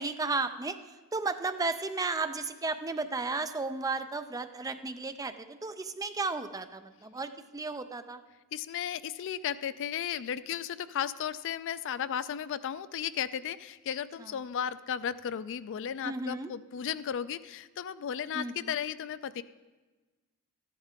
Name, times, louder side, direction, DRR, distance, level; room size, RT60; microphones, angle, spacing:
voice 1, 0.0-8.2 14.2-14.3 16.0-16.5 18.3-18.8, right 3 dB, 15° right, 9 dB, 0.4 m, -34 dB
voice 2, 8.5-19.4, left 8 dB, 60° left, 16 dB, 0.3 m, -35 dB
13.5 x 10.5 x 3.7 m, 1.2 s
head